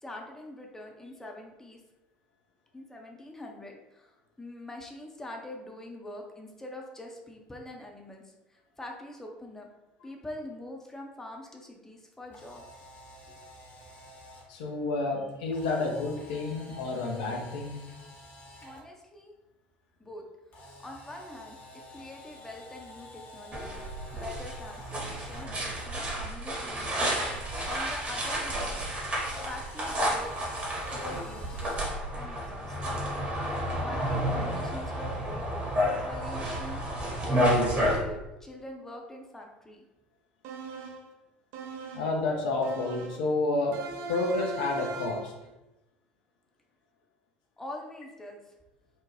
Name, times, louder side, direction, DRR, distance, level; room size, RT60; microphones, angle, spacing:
voice 1, 0.0-1.8 2.7-8.2 8.5-9.7 10.0-12.6 13.3-13.4 18.6-19.3 20.0-20.2 20.8-21.6 21.9-23.8 24.1-29.1 29.4-30.3 30.9-33.0 33.8-35.7 36.0-36.8 37.2-39.8 47.6-48.5, left 1 dB, 10° left, 1 dB, 0.5 m, -44 dB
Camera, 12.2-14.4 15.5-18.8 20.5-25.5 27.1-28.4 29.1-31.8, left 1 dB, 40° left, 0.9 m, -49 dB
voice 2, 14.5-17.8 41.9-43.8 44.1-45.3, left 3 dB, 60° left, 1 dB, 0.4 m, -30 dB
sound 1, 23.5-38.0, equal, 25° right, 0.9 m, -31 dB
sound 2, 40.4-41.1 41.5-42.2 42.6-43.3 43.7-45.4, right 4 dB, 55° right, 0.4 m, -39 dB
2.6 x 2.1 x 3.2 m, 0.98 s
figure-of-eight pair, 65°, 5 cm